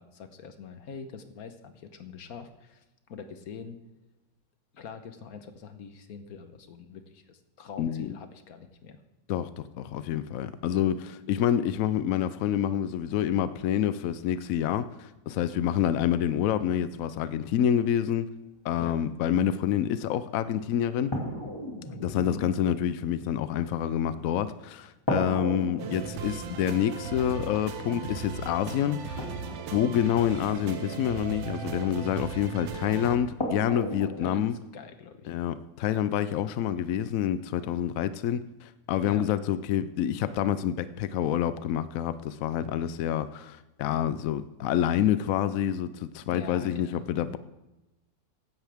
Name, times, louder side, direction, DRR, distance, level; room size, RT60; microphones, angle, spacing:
voice 1, 0.0-2.8 3.1-3.8 4.7-9.0 18.8-19.0 22.1-22.5 34.0-35.3 39.0-39.3 46.3-47.1, left 6 dB, 55° left, 8 dB, 1.4 m, -43 dB
voice 2, 7.8-8.1 9.3-18.3 18.6-21.1 22.0-29.3 29.7-34.5 35.3-47.4, left 10 dB, 80° left, 14 dB, 0.7 m, -27 dB
sound 1, 20.2-20.3 21.1-24.5 25.1-31.2 32.6-32.7 33.4-34.3, equal, 15° left, 2.2 m, -36 dB
sound 2, 25.8-33.2, right 6 dB, 90° right, 1.7 m, -37 dB
15.5 x 11.0 x 3.5 m, 1.0 s
omnidirectional pair, 2.1 m